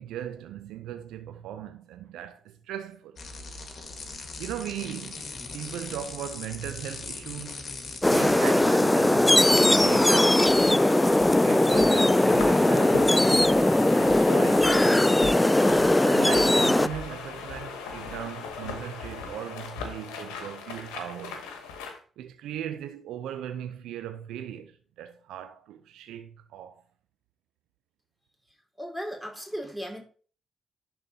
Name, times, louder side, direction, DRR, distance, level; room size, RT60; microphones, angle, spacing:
voice 1, 0.0-3.2 4.4-5.2 5.5-7.7 8.0-10.7 11.4-13.1 13.5-15.2 16.0-21.5 22.2-26.8, right 10 dB, 80° right, 0.4 m, -38 dB
sound 1, 3.2-8.5, left 3 dB, 55° left, 1.6 m, -40 dB
sound 2, 8.0-16.9, left 1 dB, 15° left, 0.3 m, -20 dB
sound 3, 9.7-22.0, left 5 dB, 90° left, 1.1 m, -38 dB
voice 2, 28.5-30.0, equal, 5° right, 2.5 m, -37 dB
11.0 x 3.9 x 2.8 m
supercardioid pair, 50°, 0 cm